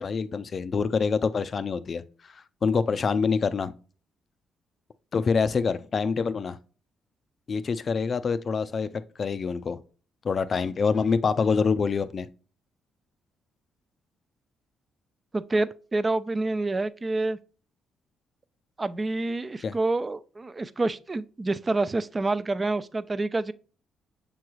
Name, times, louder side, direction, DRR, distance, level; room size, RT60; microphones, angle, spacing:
voice 1, 0.0-3.7 5.1-6.6 7.5-8.9 9.2-9.8 10.2-12.3 19.6-19.8, left 5 dB, 45° left, 0.4 m, -26 dB
voice 2, 15.3-17.4 18.8-23.5, right 2 dB, 25° right, 0.3 m, -27 dB
6.8 x 3.1 x 2.3 m
cardioid pair, 90°, 0 cm